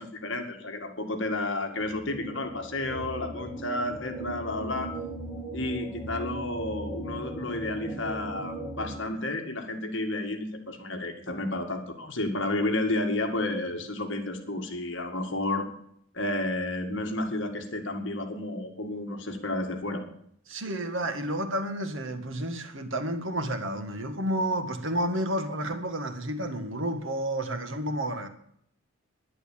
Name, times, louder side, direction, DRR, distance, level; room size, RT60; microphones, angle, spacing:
voice 1, 0.0-4.9 5.5-15.7 16.1-20.0, left 2 dB, 60° left, 2.1 m, -31 dB
sound 1, 1.6-9.0, right 2 dB, 5° left, 7.8 m, -38 dB
voice 2, 20.5-28.3, right 1 dB, 60° right, 1.8 m, -30 dB
11.0 x 11.0 x 8.6 m
head